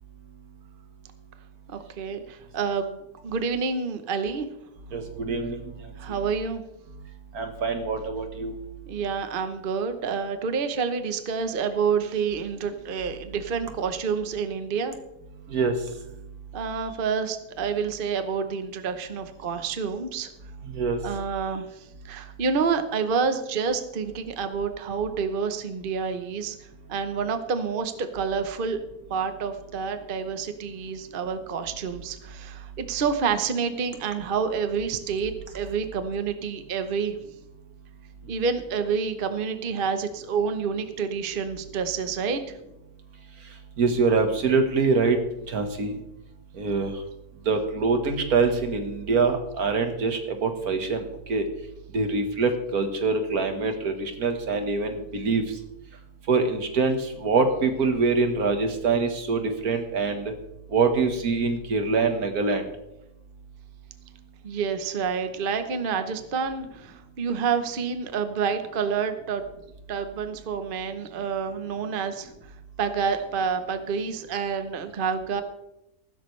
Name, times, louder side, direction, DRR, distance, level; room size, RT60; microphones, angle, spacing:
voice 1, 1.7-3.0 3.2-4.5 6.0-6.6 8.9-14.9 16.5-20.3 21.0-26.6 26.9-28.8 29.1-37.2 38.3-42.4 64.4-69.4 69.9-72.3 72.8-75.4, right 6 dB, 40° right, 8 dB, 1.0 m, -28 dB
voice 2, 4.9-5.7 6.1-6.2 7.3-8.6 15.5-15.8 20.7-21.0 43.8-45.2 45.5-45.9 46.6-46.9 47.5-51.4 51.9-55.4 56.3-60.3 60.7-62.6, right 4 dB, 75° right, 6 dB, 1.9 m, -24 dB
15.0 x 13.0 x 3.3 m, 0.89 s
omnidirectional pair, 1.6 m